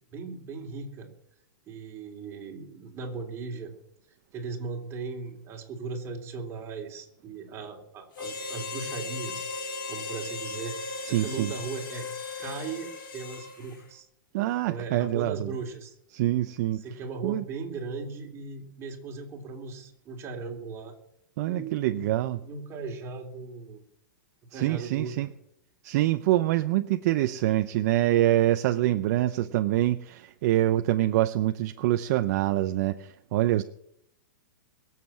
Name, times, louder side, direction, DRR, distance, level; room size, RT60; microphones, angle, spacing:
voice 1, 0.1-1.1 1.7-3.7 4.1-9.5 9.9-10.7 11.1-12.1 12.4-14.1 14.6-16.0 16.8-20.9 21.4-22.0 22.4-23.8 24.5-25.3 29.4-29.5, right 4 dB, 25° right, 1 dB, 3.3 m, -38 dB
Harmonica, 8.1-13.8, left 3 dB, 75° left, 3.4 m, -37 dB
voice 2, 11.0-11.5 14.3-15.5 16.1-16.8 17.2-17.4 21.4-22.4 24.5-25.3 25.8-33.6, right 14 dB, 50° right, 9 dB, 0.7 m, -25 dB
21.5 x 7.5 x 7.4 m, 0.78 s
hypercardioid pair, 140°, 11 cm